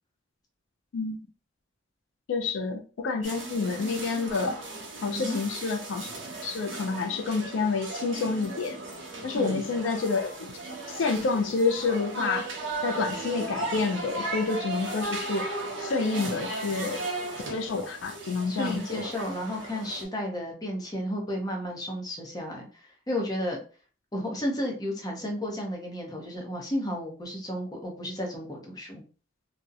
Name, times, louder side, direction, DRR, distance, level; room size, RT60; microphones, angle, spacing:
voice 1, 2.3-4.6 5.0-6.1 6.4-8.8 9.2-10.3 10.9-12.5 12.8-15.5 15.8-17.0 17.5-19.1, left 4 dB, 75° left, 0.4 m, -28 dB
sound 1, 3.2-20.1, right 2 dB, 75° right, 0.8 m, -36 dB
voice 2, 18.5-22.7 23.1-23.6 24.1-29.0, left 1 dB, 20° left, 0.6 m, -32 dB
2.7 x 2.0 x 2.3 m
head